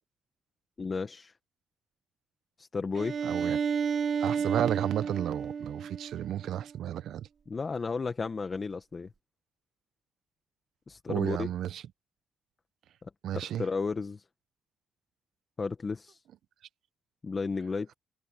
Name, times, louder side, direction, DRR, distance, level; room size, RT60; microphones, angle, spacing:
voice 1, 0.8-1.3 2.6-3.2 7.5-9.1 10.9-11.5 13.0-13.1 13.4-14.3 15.6-16.2 17.2-17.9, left 4 dB, 35° left, 1.5 m, -33 dB
Bowed string instrument, 2.9-6.7, right 6 dB, 50° right, 2.8 m, -32 dB
voice 2, 3.2-3.6 4.2-7.3 11.1-11.8 13.2-13.6, right 11 dB, 75° right, 0.9 m, -32 dB
cardioid pair, 90°, 0 cm